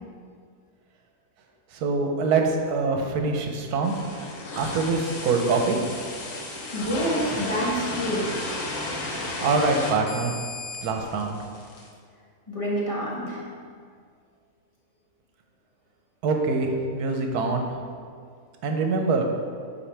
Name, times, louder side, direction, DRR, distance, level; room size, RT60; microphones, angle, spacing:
voice 1, 1.7-3.9 4.6-5.8 9.4-10.3 10.8-11.4 16.2-17.7 18.6-19.3, right 4 dB, 85° right, 3 dB, 1.3 m, -24 dB
sound 1, 3.8-11.9, left 2 dB, 80° left, 1.6 m, -33 dB
voice 2, 6.7-8.3 12.5-13.4, equal, 20° left, -6 dB, 1.5 m, -27 dB
8.7 x 4.7 x 3.3 m, 2.1 s
omnidirectional pair, 1.6 m